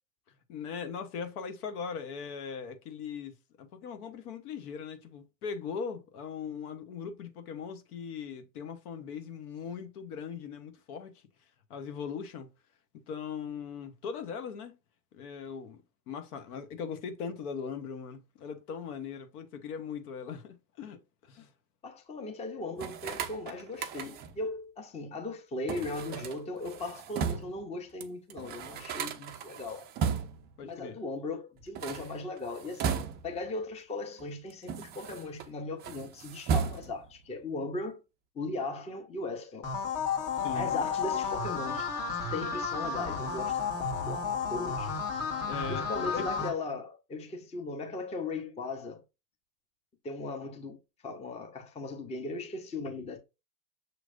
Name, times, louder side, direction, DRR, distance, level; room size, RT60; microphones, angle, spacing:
voice 1, 0.5-11.2 11.7-12.5 13.1-14.7 15.1-15.8 16.1-21.0 21.3-21.5 30.6-31.0 40.3-40.7 45.4-46.4, left 6 dB, 65° left, 1.1 m, -40 dB
voice 2, 21.8-29.9 30.6-38.0 38.3-39.7 40.5-41.9 42.2-44.9 45.7-49.0 50.0-53.2, left 2 dB, 15° left, 0.7 m, -38 dB
sound 1, 22.8-24.4 25.7-27.6 28.0-28.1 28.3-30.5 31.6-33.5 34.2-35.5 35.8-37.1, right 7 dB, 25° right, 0.4 m, -35 dB
sound 2, 39.6-46.5, left 5 dB, 45° left, 1.6 m, -32 dB
6.5 x 3.1 x 2.5 m
hypercardioid pair, 100°, 49 cm